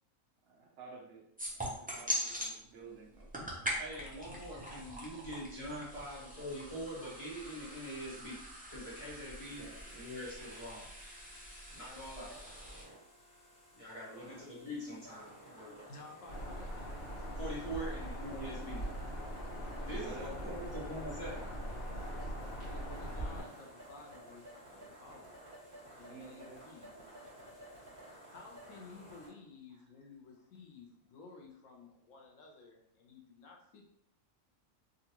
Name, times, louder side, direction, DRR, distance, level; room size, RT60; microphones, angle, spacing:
voice 1, 0.4-3.7 9.5-10.0 19.9-20.7 26.1-26.7 26.9-27.3, right 3 dB, 65° right, -1 dB, 1.0 m, -52 dB
sound 1, 1.4-2.5 3.1-12.8, equal, 15° right, 0.3 m, -42 dB
voice 2, 3.8-8.4 8.7-10.9 11.7-12.4 13.7-15.9 17.4-18.8 19.8-21.5, equal, 25° left, -7 dB, 1.2 m, -44 dB
sound 2, 9.4-29.3, right 1 dB, 35° right, 1.5 m, -55 dB
voice 3, 15.9-16.7 22.7-25.4 26.0-26.9 28.3-33.9, left 3 dB, 75° left, 0 dB, 1.0 m, -54 dB
Bird vocalization bird call bird song, 16.3-23.4, equal, 45° left, 1.3 m, -41 dB
3.7 x 2.3 x 2.9 m, 0.77 s
omnidirectional pair, 1.4 m